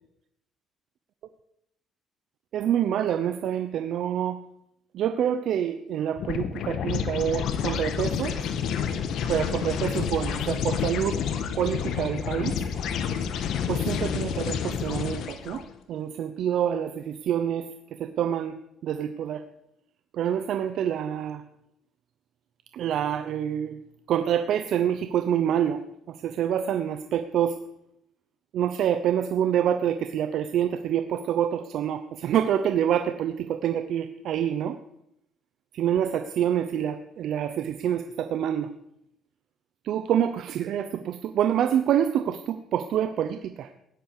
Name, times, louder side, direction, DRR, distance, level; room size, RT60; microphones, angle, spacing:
voice 1, 2.5-4.4 4.9-8.4 9.3-11.2 11.6-12.6 13.7-15.6 15.9-18.6 18.8-19.4 20.1-21.4 22.7-23.8 24.1-25.8 26.1-27.6 28.5-34.8 35.7-38.7 39.8-43.7, right 9 dB, 65° right, 10 dB, 0.9 m, -27 dB
sound 1, 6.2-15.6, left 7 dB, 70° left, 1.8 m, -29 dB
17.0 x 11.5 x 6.7 m, 0.80 s
cardioid pair, 110°, 0 cm